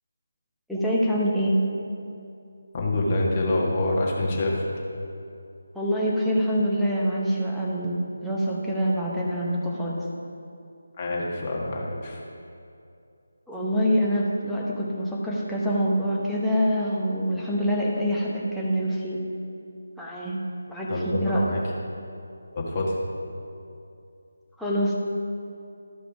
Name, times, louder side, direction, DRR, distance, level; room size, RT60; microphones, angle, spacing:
voice 1, 0.7-1.6 5.7-10.0 13.5-19.2 20.0-20.4 20.7-21.5 24.6-24.9, equal, ahead, -7 dB, 1.0 m, -25 dB
voice 2, 2.7-4.6 11.0-12.2 20.9-21.6 22.5-22.9, left 2 dB, 25° left, -3 dB, 1.5 m, -26 dB
13.0 x 5.1 x 4.8 m, 2.5 s
figure-of-eight pair, 155°, 0 cm